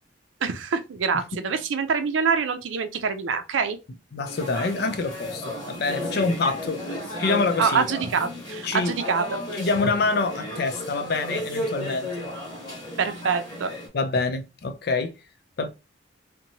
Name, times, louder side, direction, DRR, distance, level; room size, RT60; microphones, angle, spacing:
voice 1, 0.4-3.8 7.6-9.3 13.0-13.7, right 5 dB, 80° right, 0.4 m, -25 dB
voice 2, 4.1-6.9 7.2-7.9 8.6-9.0 9.5-12.3 13.9-15.1 15.6-15.7, left 3 dB, 55° left, 0.4 m, -26 dB
sound 1, 4.2-13.9, left 1 dB, 20° left, 1.1 m, -34 dB
2.8 x 2.1 x 2.7 m
head